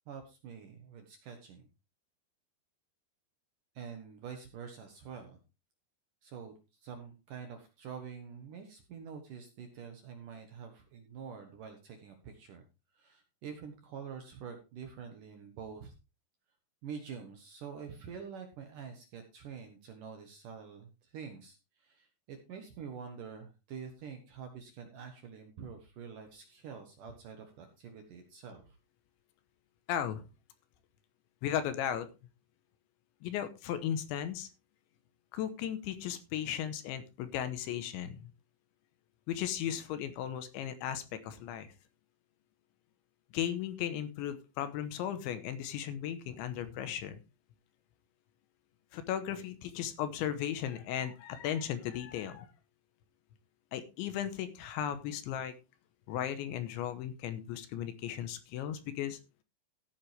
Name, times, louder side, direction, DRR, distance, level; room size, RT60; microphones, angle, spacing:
voice 1, 0.1-1.7 3.8-5.4 6.2-12.6 12.9-15.9 16.8-28.8, right 6 dB, 70° right, 5 dB, 2.0 m, -46 dB
voice 2, 29.9-30.2 31.4-32.1 33.2-34.5 35.3-38.3 39.3-41.7 43.3-47.2 48.9-52.5 53.7-55.5 56.1-59.2, left 10 dB, 75° left, 11 dB, 3.1 m, -36 dB
15.0 x 8.6 x 3.4 m, 0.28 s
omnidirectional pair, 5.7 m